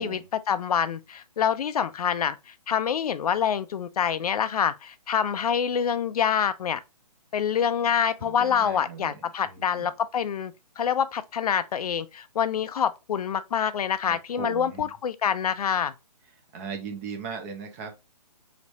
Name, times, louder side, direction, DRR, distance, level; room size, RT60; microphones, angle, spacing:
voice 1, 0.5-6.8 7.3-15.9, left 8 dB, 65° left, 0.4 m, -26 dB
voice 2, 8.2-9.9 14.1-14.9 16.3-18.0, right 6 dB, 25° right, 0.7 m, -38 dB
3.2 x 3.1 x 2.7 m
hypercardioid pair, 150°, 21 cm